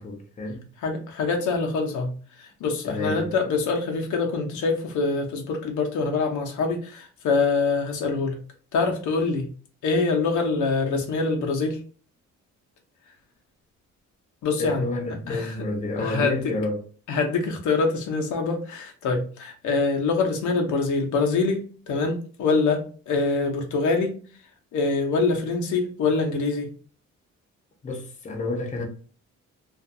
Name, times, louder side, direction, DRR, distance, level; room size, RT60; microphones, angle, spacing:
voice 1, 0.0-0.6 2.9-3.3 14.6-16.8 27.8-28.8, left 2 dB, 25° left, 0.6 m, -30 dB
voice 2, 0.8-2.1 2.4-8.4 8.7-9.5 9.8-11.8 14.4-14.9 15.3-15.7 16.0-16.5 17.1-24.2 24.7-26.7, left 4 dB, 75° left, 0.7 m, -25 dB
2.4 x 2.3 x 2.6 m
cardioid pair, 90°, 30 cm